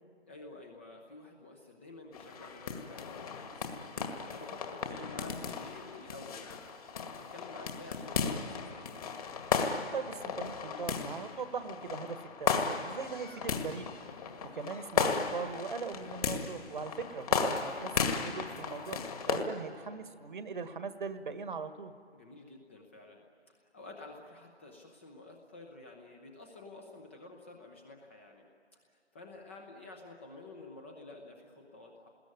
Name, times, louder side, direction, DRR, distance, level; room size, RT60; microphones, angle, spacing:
voice 1, 0.3-6.6 7.1-9.0 22.1-23.2 23.5-28.5 28.7-32.1, left 2 dB, 10° left, 3 dB, 0.8 m, -51 dB
sound 1, 2.1-19.4, left 5 dB, 35° left, 2.0 m, -35 dB
voice 2, 9.9-13.9 14.5-19.0 19.3-21.9, right 5 dB, 45° right, 10 dB, 1.5 m, -40 dB
29.0 x 20.5 x 9.6 m, 2.2 s
figure-of-eight pair, 155°, 34 cm